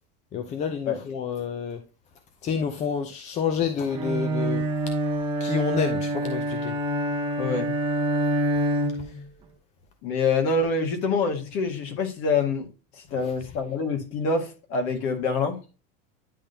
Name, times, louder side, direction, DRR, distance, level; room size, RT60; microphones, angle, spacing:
voice 1, 0.3-1.8 2.4-4.6 5.4-6.7 9.0-9.2 13.2-13.3, left 6 dB, 25° left, 0.5 m, -29 dB
Bowed string instrument, 3.9-9.2, right 1 dB, 15° right, 0.9 m, -26 dB
voice 2, 7.4-7.7 10.0-12.7 13.0-15.6, left 4 dB, 45° left, 1.8 m, -26 dB
10.0 x 3.6 x 2.7 m
supercardioid pair, 160°, 29 cm